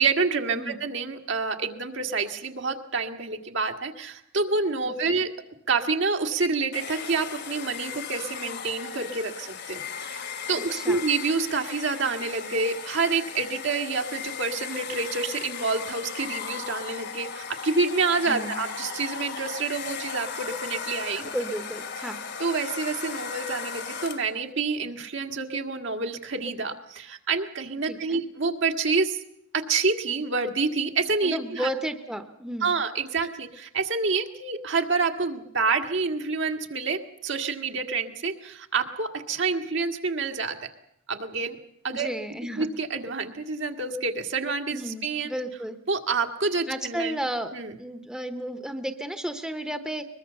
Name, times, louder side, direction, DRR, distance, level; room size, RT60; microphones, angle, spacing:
voice 1, 0.0-5.3 5.7-21.3 22.0-22.1 22.4-29.2 29.5-31.7 32.6-40.6 41.1-41.6 41.8-42.1 42.6-45.3 45.9-47.2 47.5-47.7, right 4 dB, 65° right, 5 dB, 1.8 m, -28 dB
voice 2, 4.8-5.1 10.5-11.0 18.3-18.5 21.1-22.2 27.9-28.2 31.2-32.7 41.9-42.7 44.7-45.8 46.7-47.5 47.8-50.1, right 1 dB, 5° right, 8 dB, 1.0 m, -33 dB
Domestic sounds home sounds, 6.7-24.4, left 6 dB, 55° left, 1.6 m, -37 dB
22.5 x 21.5 x 6.9 m, 0.78 s
head